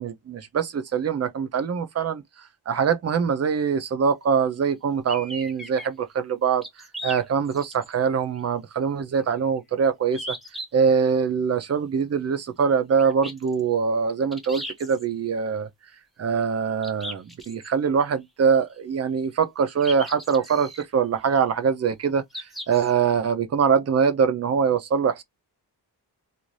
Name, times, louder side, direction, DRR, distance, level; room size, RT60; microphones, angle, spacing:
voice 1, 0.0-10.4 10.7-15.7 16.2-25.2, right 6 dB, 40° right, 0.5 m, -23 dB
sound 1, 5.1-5.9 6.6-7.9 8.4-8.5 10.1-10.6 13.0-13.6 14.3-15.0 16.8-17.7 19.8-20.8 22.3-22.9, equal, ahead, 0.8 m, -37 dB
2.6 x 2.4 x 3.1 m
wide cardioid pair, 145°, 41 cm